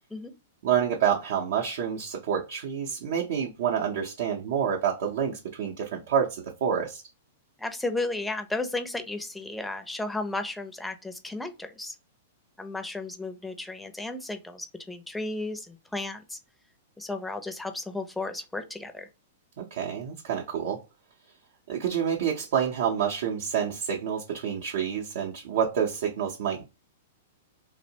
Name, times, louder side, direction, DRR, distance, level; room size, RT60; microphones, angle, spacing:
voice 1, 0.6-7.0 19.6-20.8 21.7-26.7, right 8 dB, 65° right, -1 dB, 0.5 m, -28 dB
voice 2, 7.6-12.0 12.6-16.4 17.0-19.1, left 2 dB, 5° left, 8 dB, 0.5 m, -34 dB
2.8 x 2.0 x 2.7 m, 0.27 s
hypercardioid pair, 115°, 0 cm